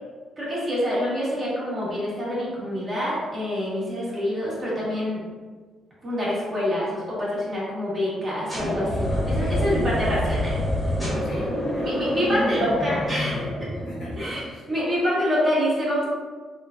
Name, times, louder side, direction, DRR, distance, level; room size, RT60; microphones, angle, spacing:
voice 1, 0.4-5.2 6.0-10.6 11.8-13.7 14.2-14.4 14.7-16.1, equal, 35° right, -7 dB, 1.3 m, -26 dB
sound 1, 8.5-14.4, left 1 dB, 10° left, 1.0 m, -26 dB
voice 2, 9.1-10.1 11.2-12.0 13.7-14.6, equal, 80° left, -6 dB, 1.2 m, -41 dB
3.1 x 2.2 x 2.5 m, 1.4 s
cardioid pair, 90°, 0 cm